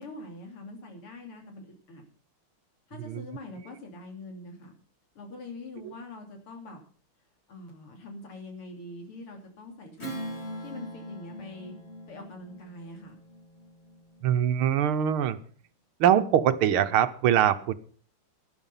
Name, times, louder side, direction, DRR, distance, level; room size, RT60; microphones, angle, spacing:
voice 1, 0.0-2.0 2.9-4.7 5.2-6.8 7.5-10.1 10.6-11.7 12.1-13.2, left 2 dB, 90° left, 3 dB, 3.9 m, -44 dB
Strum, 10.0-14.9, equal, 30° left, 2.9 m, -42 dB
voice 2, 14.2-15.4 16.0-17.7, right 10 dB, 75° right, 11 dB, 1.8 m, -23 dB
12.5 x 11.0 x 5.7 m, 0.43 s
omnidirectional pair, 2.4 m